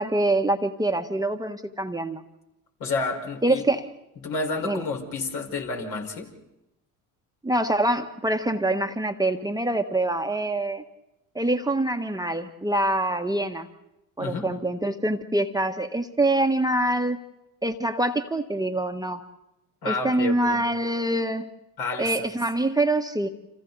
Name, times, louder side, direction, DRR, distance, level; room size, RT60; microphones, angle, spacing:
voice 1, 0.0-2.2 3.4-3.8 4.6-4.8 7.4-10.8 11.3-13.7 14.2-17.2 17.6-19.2 19.8-21.5 22.0-23.3, right 1 dB, 10° right, 5 dB, 1.3 m, -25 dB
voice 2, 2.8-3.6 4.2-6.3 14.2-14.5 19.8-20.6 21.8-22.4, left 3 dB, 65° left, 1 dB, 5.2 m, -30 dB
30.0 x 27.0 x 4.1 m, 0.91 s
hypercardioid pair, 70°, 41 cm